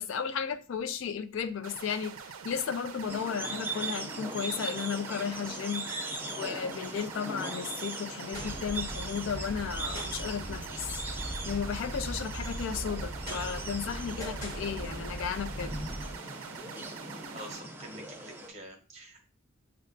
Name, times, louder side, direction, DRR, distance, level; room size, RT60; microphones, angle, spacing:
voice 1, 0.0-2.2 2.4-5.9 6.3-10.7 11.4-15.7, left 7 dB, 70° left, 0.3 m, -34 dB
sound 1, 1.6-17.6, right 6 dB, 85° right, 0.4 m, -45 dB
sound 2, 3.1-18.5, right 2 dB, 10° right, 0.5 m, -40 dB
sound 3, 8.3-16.2, right 1 dB, 35° left, 1.3 m, -39 dB
voice 2, 17.3-19.3, equal, 35° right, 0.9 m, -46 dB
6.2 x 2.2 x 2.5 m
head